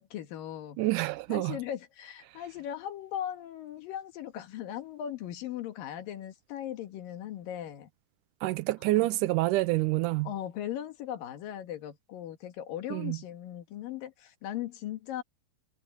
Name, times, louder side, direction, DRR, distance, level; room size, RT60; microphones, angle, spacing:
voice 1, 0.0-0.8 1.3-7.9 9.0-9.1 10.2-15.2, left 11 dB, 85° left, 3.3 m, -38 dB
voice 2, 0.8-1.6 8.4-10.3 12.9-13.2, right 19 dB, 80° right, 2.1 m, -27 dB
omnidirectional pair, 3.9 m